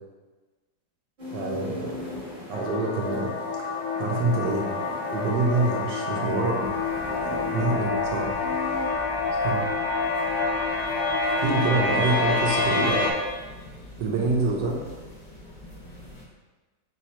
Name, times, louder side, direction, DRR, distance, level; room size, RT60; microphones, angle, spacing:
sound 1, 1.2-8.9, left 2 dB, 40° right, 0.9 m, -41 dB
voice 1, 1.3-1.9 2.5-3.3 3.6-4.7 5.1-6.7 7.2-8.3 9.4-9.6 11.4-13.1 14.0-14.8, right 3 dB, 75° right, 0 dB, 1.3 m, -26 dB
sound 2, 2.5-13.1, left 3 dB, 75° left, 1.2 m, -27 dB
sound 3, 6.6-16.2, left 1 dB, 40° left, 0.6 m, -44 dB
4.2 x 3.9 x 2.9 m, 1.3 s
omnidirectional pair, 2.0 m